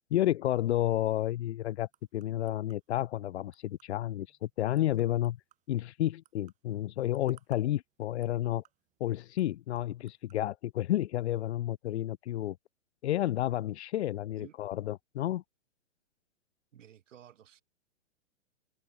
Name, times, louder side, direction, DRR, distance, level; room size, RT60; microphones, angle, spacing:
voice 1, 0.1-5.4 5.7-8.6 9.0-12.6 13.0-15.4, left 13 dB, 60° left, 0.6 m, -31 dB
sound 1, 1.0-10.5, right 13 dB, 20° right, 2.6 m, -68 dB
voice 2, 16.7-17.6, right 10 dB, 75° right, 1.9 m, -54 dB
open air
hypercardioid pair, 150°, 38 cm